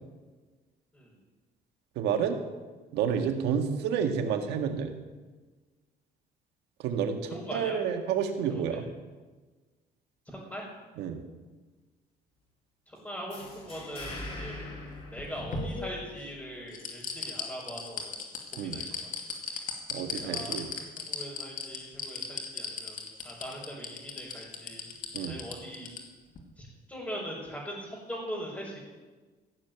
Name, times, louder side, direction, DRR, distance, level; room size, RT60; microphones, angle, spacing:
voice 1, 1.9-2.4 2.9-4.9 6.8-8.8 11.0-11.2 18.6-18.8 19.9-20.7 25.1-25.4, right 7 dB, 85° right, 5 dB, 1.8 m, -29 dB
voice 2, 7.3-7.8 8.5-8.8 10.3-10.7 12.9-14.7 15.1-18.2 18.5-19.3 20.1-20.6 21.0-23.0 23.2-24.8 25.3-25.9 26.6-28.8, equal, 10° left, -7 dB, 5.4 m, -41 dB
sound 1, 13.3-16.0, left 2 dB, 35° left, 6.3 m, -42 dB
sound 2, 15.0-16.3 16.7-26.0 26.3-26.4, left 5 dB, 50° left, 2.6 m, -36 dB
16.0 x 7.5 x 9.2 m, 1.3 s
cardioid pair, 110°, 17 cm